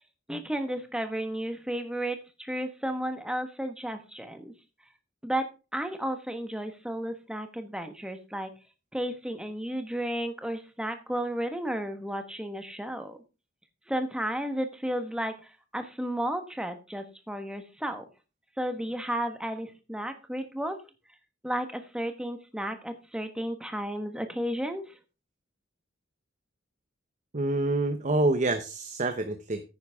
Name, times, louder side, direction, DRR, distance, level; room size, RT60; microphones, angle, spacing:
voice 1, 0.3-4.5 5.2-5.5 5.7-8.5 8.9-13.2 13.9-18.0 18.6-20.8 21.4-25.0, right 1 dB, 5° right, 7 dB, 1.4 m, -33 dB
voice 2, 27.3-29.6, right 2 dB, 40° right, 9 dB, 0.8 m, -27 dB
9.8 x 9.5 x 3.6 m, 0.31 s
head